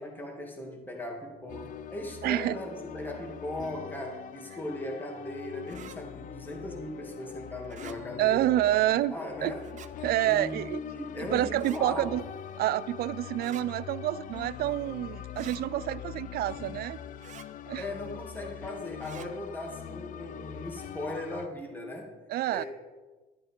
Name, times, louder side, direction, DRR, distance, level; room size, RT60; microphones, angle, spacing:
voice 1, 0.0-8.5 9.1-9.7 10.2-12.2 17.8-22.2 22.5-22.7, left 1 dB, 10° left, 1 dB, 2.1 m, -38 dB
sound 1, 1.5-21.5, left 9 dB, 50° left, 0.5 m, -43 dB
voice 2, 2.2-2.6 8.2-9.1 9.4-9.5 10.0-10.8 11.3-12.2 12.6-17.0 17.7-17.8 22.3-22.6, right 14 dB, 65° right, 18 dB, 0.4 m, -28 dB
sound 2, 5.7-6.0 7.6-8.0 9.6-9.9 11.5-11.8 13.4-13.6 15.3-15.6 17.2-17.5 19.0-19.3, right 9 dB, 45° right, 0.8 m, -47 dB
12.0 x 11.5 x 4.4 m, 1.2 s
cardioid pair, 110°, 17 cm